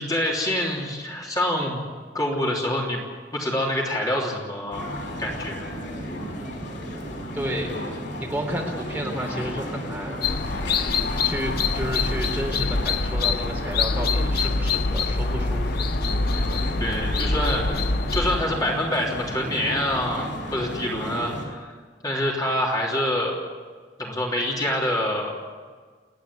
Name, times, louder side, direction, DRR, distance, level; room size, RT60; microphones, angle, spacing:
voice 1, 0.0-1.8 2.1-3.0 3.3-4.9 5.2-5.7 16.8-17.8 18.1-21.7 22.0-23.3 24.0-25.3, left 1 dB, 20° left, -2 dB, 3.2 m, -26 dB
sound 1, 4.7-21.5, equal, 85° left, 5.6 m, -33 dB
voice 2, 7.3-7.7 8.2-10.2 11.2-15.9, equal, 10° right, 0 dB, 3.7 m, -31 dB
sound 2, 10.2-18.4, left 3 dB, 60° left, 0.7 m, -25 dB
29.5 x 10.5 x 9.7 m, 1.5 s
head